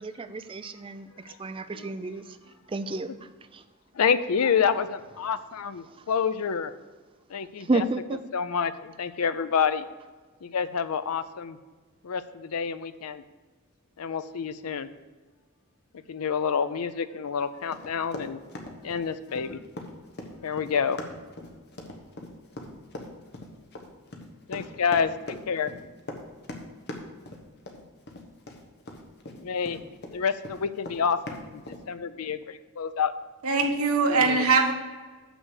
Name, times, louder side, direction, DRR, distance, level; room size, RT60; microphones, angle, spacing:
voice 1, 0.0-2.4 2.7-3.6 5.8-6.0 7.6-8.2, right 2 dB, 25° right, 11 dB, 0.4 m, -31 dB
voice 2, 3.9-6.7 7.3-7.8 8.3-9.8 10.4-11.6 12.0-13.2 14.0-14.9 16.1-18.4 18.8-19.6 20.4-21.0 24.5-25.7 29.4-29.8 30.1-33.1 34.1-34.4, left 6 dB, 80° left, 12 dB, 0.5 m, -28 dB
Run, 17.7-30.1 30.4-31.8, left 1 dB, 50° left, 1.1 m, -40 dB
voice 3, 33.4-34.7, right 4 dB, 80° right, 2 dB, 1.2 m, -22 dB
6.7 x 6.1 x 6.5 m, 1.3 s
head